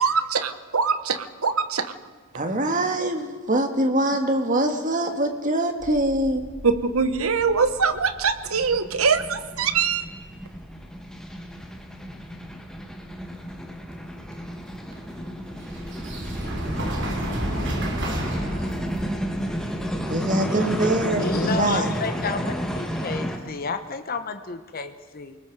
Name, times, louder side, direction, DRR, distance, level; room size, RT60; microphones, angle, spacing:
voice 1, 0.0-1.9 6.6-10.0, right 5 dB, 85° right, 11 dB, 1.1 m, -23 dB
voice 2, 2.3-6.5 20.1-21.9, right 1 dB, 40° right, 5 dB, 1.8 m, -23 dB
sound 1, 5.8-20.2, right 1 dB, 55° right, 3.5 m, -34 dB
sound 2, 8.5-23.4, equal, 5° left, 1.6 m, -32 dB
voice 3, 21.2-25.4, left 4 dB, 45° left, 8 dB, 1.0 m, -30 dB
28.5 x 19.5 x 4.8 m, 1.5 s
head